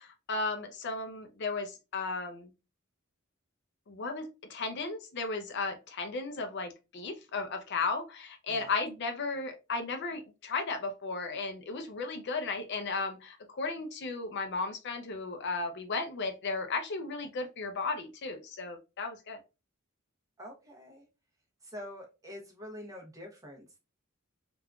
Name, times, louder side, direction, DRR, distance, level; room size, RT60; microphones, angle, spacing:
voice 1, 0.0-2.5 3.9-19.4, left 3 dB, 55° left, 6 dB, 0.5 m, -35 dB
voice 2, 20.4-21.1 21.6-23.8, equal, 15° right, 0 dB, 0.8 m, -46 dB
3.5 x 2.4 x 2.2 m, 0.27 s
head